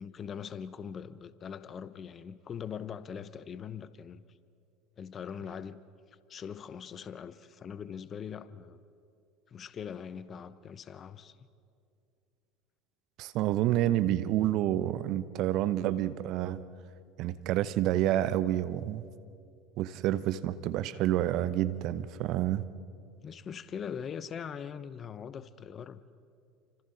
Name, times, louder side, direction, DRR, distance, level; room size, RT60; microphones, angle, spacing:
voice 1, 0.0-4.2 5.0-5.8 6.3-8.8 9.5-11.4 23.2-26.0, left 7 dB, 35° left, 0.9 m, -41 dB
voice 2, 13.2-16.6 17.2-19.0 19.8-22.6, right 13 dB, 55° right, 0.8 m, -29 dB
30.0 x 25.5 x 4.0 m
hypercardioid pair, 75°, 0 cm